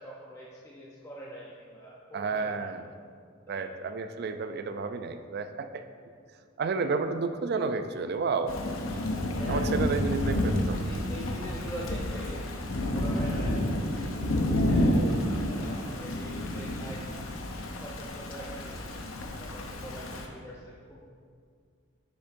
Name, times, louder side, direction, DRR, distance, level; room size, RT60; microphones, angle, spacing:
voice 1, 0.0-2.7 3.5-3.7 9.3-9.7 10.8-12.5 12.9-14.0 14.7-17.1 17.8-21.0, right 1 dB, 15° left, -6 dB, 0.6 m, -44 dB
voice 2, 2.1-2.9 3.5-5.8 6.6-8.5 9.5-10.9 14.9-15.2, right 4 dB, 50° right, 9 dB, 0.3 m, -31 dB
Thunder / Rain, 8.5-20.3, left 1 dB, 85° left, 0.7 m, -30 dB
7.1 x 7.0 x 2.6 m, 2.1 s
head